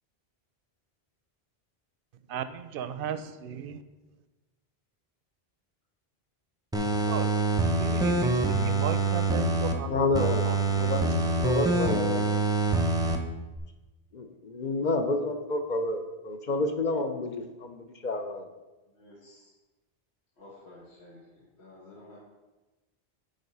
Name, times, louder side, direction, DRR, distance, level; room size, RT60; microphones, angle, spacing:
voice 1, 2.3-3.8 7.1-10.9, right 8 dB, 65° right, 12 dB, 0.7 m, -36 dB
sound 1, 6.7-9.7 10.1-13.2 13.6-13.7, right 3 dB, 5° right, 0.5 m, -25 dB
voice 2, 9.9-11.0 11.3-12.3 14.1-18.5, left 2 dB, 50° left, 6 dB, 0.7 m, -29 dB
voice 3, 18.9-19.5 20.4-22.2, left 1 dB, 85° left, -7 dB, 2.0 m, -52 dB
9.2 x 3.9 x 5.4 m, 1.1 s
omnidirectional pair, 1.1 m